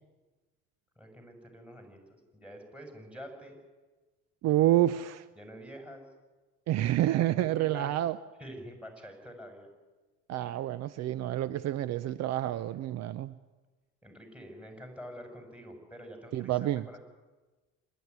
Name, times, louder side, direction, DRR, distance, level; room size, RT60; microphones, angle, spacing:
voice 1, 1.0-2.0 2.3-3.6 5.4-6.0 7.3-7.9 8.4-9.7 10.4-10.6 14.0-17.0, equal, 5° right, 4 dB, 6.6 m, -47 dB
voice 2, 4.4-5.2 6.7-8.2 10.3-13.4 16.3-16.9, right 13 dB, 60° right, 16 dB, 0.7 m, -28 dB
26.5 x 12.5 x 9.6 m, 1.2 s
supercardioid pair, 95°, 30 cm